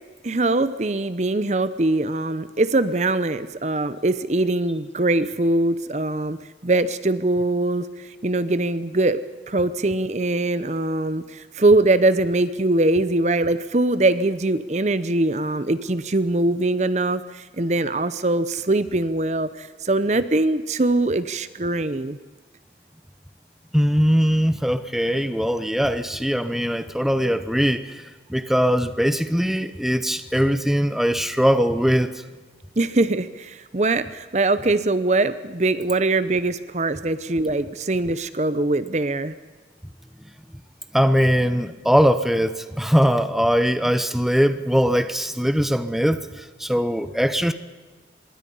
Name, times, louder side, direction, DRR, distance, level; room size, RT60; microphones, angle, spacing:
voice 1, 0.2-6.4 6.6-7.9 8.2-22.2 32.8-39.3, right 2 dB, 40° right, 0.8 m, -22 dB
voice 2, 23.7-28.0 28.3-32.1 40.9-47.5, equal, ahead, 1.0 m, -21 dB
25.0 x 22.5 x 5.6 m
head